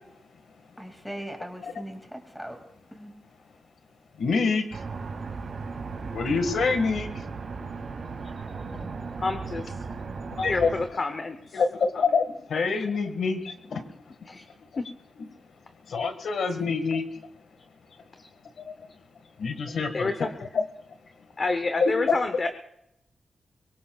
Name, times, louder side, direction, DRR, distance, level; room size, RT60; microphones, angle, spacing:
voice 1, 0.8-2.6 2.9-3.1, equal, ahead, 3 dB, 2.3 m, -39 dB
voice 2, 4.2-4.6 6.1-7.1 10.4-10.7 11.5-12.2 12.5-13.4 13.7-13.8 15.9-17.0 19.4-20.1 20.5-20.6 21.8-22.2, left 4 dB, 85° left, 7 dB, 1.7 m, -25 dB
sound 1, 4.7-10.9, right 4 dB, 65° right, 2.4 m, -36 dB
voice 3, 9.2-9.9 10.5-11.6 14.3-14.4 14.8-14.9 18.2-18.3 19.7-20.3 21.4-22.5, left 3 dB, 35° left, 7 dB, 0.8 m, -29 dB
23.5 x 23.5 x 2.4 m, 0.78 s
wide cardioid pair, 175°, 0 cm